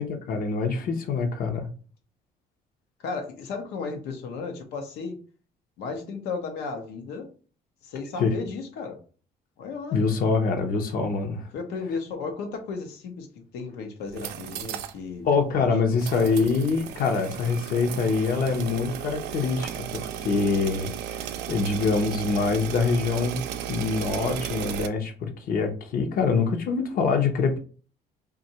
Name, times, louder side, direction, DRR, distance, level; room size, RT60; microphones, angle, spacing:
voice 1, 0.0-1.7 8.2-8.3 9.9-11.5 15.2-23.4 23.7-27.6, left 4 dB, 60° left, 0.8 m, -25 dB
voice 2, 3.0-5.1 5.8-7.3 7.8-9.0 9.6-10.0 11.5-13.3 13.5-15.3 15.6-16.4, left 4 dB, 90° left, 0.9 m, -34 dB
sound 1, 14.0-15.0 15.3-15.4 16.0-24.9, right 10 dB, 80° right, 0.4 m, -35 dB
2.8 x 2.4 x 4.1 m
cardioid pair, 110°, 17 cm